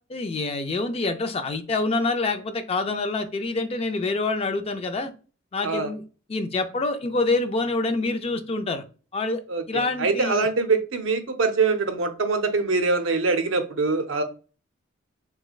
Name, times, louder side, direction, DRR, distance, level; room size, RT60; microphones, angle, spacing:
voice 1, 0.1-5.1 5.5-6.0 6.3-8.8 9.1-9.4 9.7-10.5, left 3 dB, 30° left, 0.4 m, -26 dB
voice 2, 9.5-14.2, right 4 dB, 70° right, 0.6 m, -24 dB
3.4 x 3.1 x 2.3 m
head